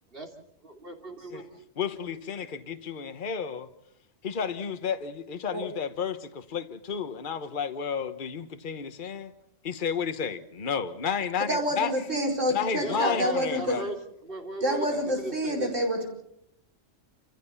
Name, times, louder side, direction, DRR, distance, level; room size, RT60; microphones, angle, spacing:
voice 1, 0.6-1.5 12.8-14.0 14.2-15.7, right 1 dB, 45° right, 3.3 m, -37 dB
voice 2, 1.8-3.7 4.2-9.3 9.6-11.9 12.5-13.8, left 6 dB, 45° left, 1.2 m, -32 dB
voice 3, 11.5-13.8 14.6-16.1, equal, 75° right, 5.4 m, -27 dB
28.5 x 15.0 x 7.1 m
omnidirectional pair, 1.3 m